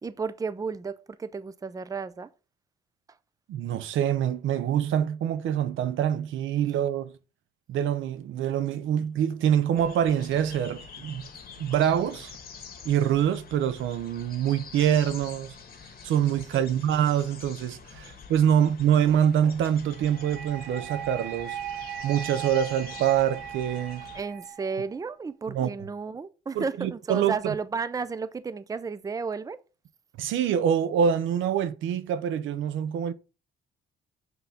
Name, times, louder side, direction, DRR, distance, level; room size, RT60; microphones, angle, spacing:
voice 1, 0.0-2.3 16.5-16.6 24.1-29.6, right 5 dB, 15° right, 0.5 m, -33 dB
voice 2, 3.5-7.1 7.7-11.3 11.6-12.4 12.8-15.6 16.0-21.6 22.0-24.1 25.5-25.7 26.5-27.5 30.2-33.1, right 9 dB, 80° right, 0.6 m, -25 dB
sound 1, 9.8-24.2, left 6 dB, 50° left, 1.4 m, -46 dB
sound 2, 19.9-25.0, right 9 dB, 50° right, 1.2 m, -38 dB
5.7 x 3.8 x 5.9 m
cardioid pair, 90°, 20 cm